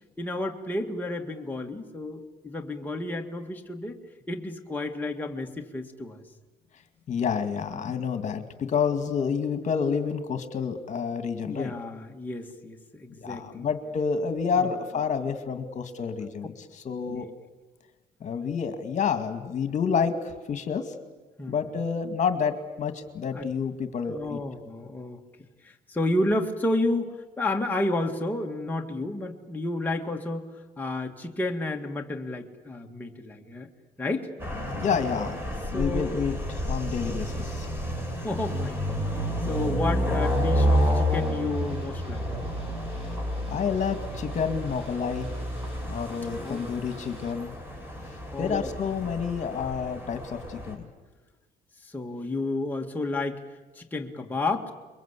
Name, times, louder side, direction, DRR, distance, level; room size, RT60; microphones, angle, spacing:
voice 1, 0.2-4.0 4.3-6.2 11.4-13.7 14.6-14.7 17.1-17.3 21.4-21.6 23.3-23.5 24.1-25.2 25.6-33.7 34.0-34.3 35.7-36.1 37.1-37.3 38.2-39.0 39.4-42.3 46.4-46.7 48.3-48.7 51.8-53.4 53.8-54.7, left 2 dB, 10° left, 1 dB, 2.1 m, -31 dB
voice 2, 7.1-11.7 13.2-16.5 16.8-17.3 18.2-20.9 21.5-24.4 34.7-35.4 35.7-36.4 36.6-37.7 43.5-45.3 45.8-47.5 48.4-50.9, left 6 dB, 45° left, 8 dB, 2.2 m, -29 dB
sound 1, 34.4-50.7, equal, 15° right, 6.1 m, -30 dB
sound 2, 40.2-47.3, right 2 dB, 35° right, 6.2 m, -49 dB
27.5 x 23.0 x 8.4 m, 1.2 s
cardioid pair, 110°, 17 cm